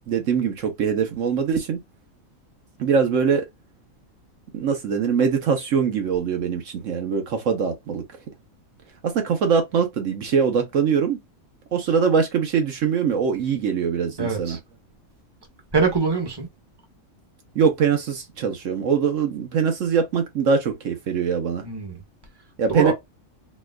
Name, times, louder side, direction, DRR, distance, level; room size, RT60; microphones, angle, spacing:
voice 1, 0.1-1.8 2.8-3.5 4.5-8.0 9.0-11.2 11.7-14.6 17.5-21.6 22.6-22.9, right 6 dB, 70° right, 1.1 m, -22 dB
voice 2, 14.2-14.6 15.7-16.5 21.6-22.0 22.7-22.9, right 4 dB, 20° right, 1.1 m, -23 dB
4.3 x 2.3 x 2.3 m
omnidirectional pair, 1.4 m